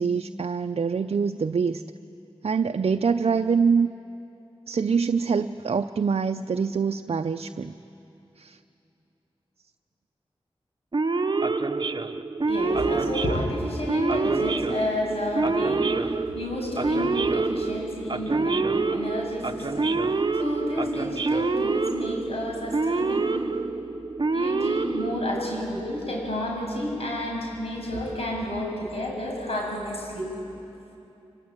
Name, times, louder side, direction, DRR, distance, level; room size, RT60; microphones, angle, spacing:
voice 1, 0.0-1.8 2.4-3.9 4.7-7.7 8.4-8.6, right 5 dB, 65° right, 7 dB, 0.6 m, -24 dB
Male speech man speaking / Siren, 10.9-25.7, right 3 dB, 45° right, 0.9 m, -26 dB
voice 2, 12.4-23.6 24.3-30.3, left 1 dB, 65° left, -1 dB, 7.4 m, -31 dB
25.0 x 20.5 x 8.9 m, 2.9 s
cardioid pair, 50°, 11 cm